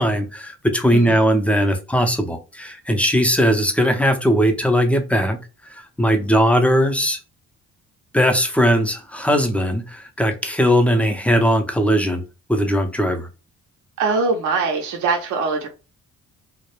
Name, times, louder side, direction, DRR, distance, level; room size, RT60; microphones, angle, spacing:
voice 1, 0.0-5.4 5.7-7.2 8.1-12.2 12.5-13.3, equal, 5° left, 0.5 m, -19 dB
voice 2, 14.0-15.7, right 4 dB, 75° right, 0.6 m, -22 dB
2.3 x 2.0 x 3.0 m
cardioid pair, 90°, 30 cm